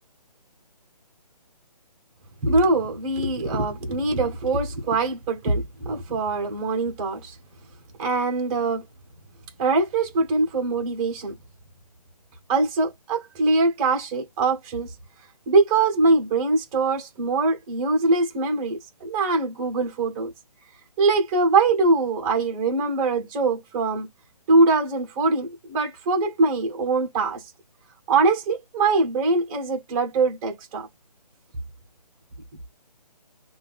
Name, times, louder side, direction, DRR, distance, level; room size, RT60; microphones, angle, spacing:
voice 1, 2.4-7.4 8.0-8.8 9.6-11.3 12.5-14.9 15.5-20.3 21.0-24.1 24.5-27.4 28.1-30.9, right 3 dB, 10° right, 0.7 m, -22 dB
3.3 x 2.2 x 2.3 m
hypercardioid pair, 165°, 21 cm